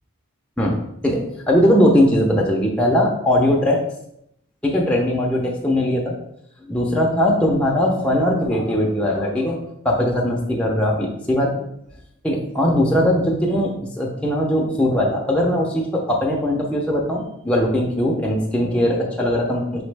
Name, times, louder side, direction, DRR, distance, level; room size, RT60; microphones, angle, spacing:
voice 1, 1.0-3.8 4.6-6.1 6.7-11.5 12.2-19.8, left 1 dB, 5° left, -2 dB, 0.5 m, -20 dB
4.3 x 3.0 x 3.3 m, 0.74 s
head